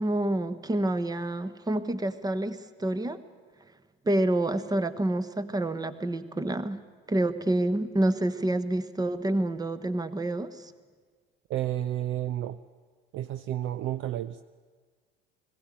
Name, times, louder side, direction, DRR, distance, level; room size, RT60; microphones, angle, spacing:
voice 1, 0.0-3.2 4.0-6.8 7.1-10.7, right 1 dB, 10° right, 13 dB, 1.2 m, -28 dB
voice 2, 11.5-12.6 13.1-14.4, right 12 dB, 40° right, 13 dB, 0.6 m, -31 dB
20.5 x 16.0 x 9.2 m, 1.5 s
figure-of-eight pair, 70°, 30 cm